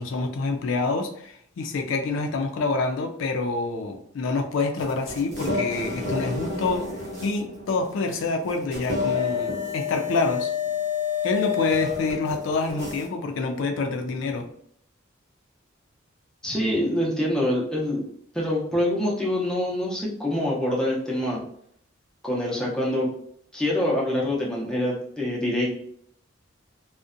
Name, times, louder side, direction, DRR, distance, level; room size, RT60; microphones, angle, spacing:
voice 1, 0.0-10.5 11.2-14.5, left 3 dB, 75° left, 5 dB, 0.3 m, -27 dB
sound 1, 4.8-13.1, left 5 dB, 55° right, 0.9 m, -29 dB
voice 2, 16.4-18.0 18.3-21.4 22.2-23.1 23.5-25.7, left 1 dB, 5° left, -4 dB, 0.5 m, -25 dB
2.6 x 2.1 x 2.4 m, 0.68 s
head